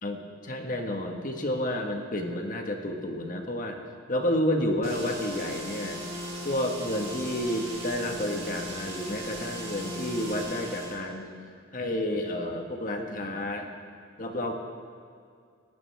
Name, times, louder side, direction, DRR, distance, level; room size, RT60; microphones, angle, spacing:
voice 1, 0.0-3.8 4.1-6.0 6.4-11.3 11.7-13.7 14.2-14.5, left 1 dB, 45° left, 3 dB, 1.6 m, -30 dB
sound 1, 4.8-11.0, equal, 35° right, 3.4 m, -38 dB
29.0 x 12.5 x 3.6 m, 2.3 s
head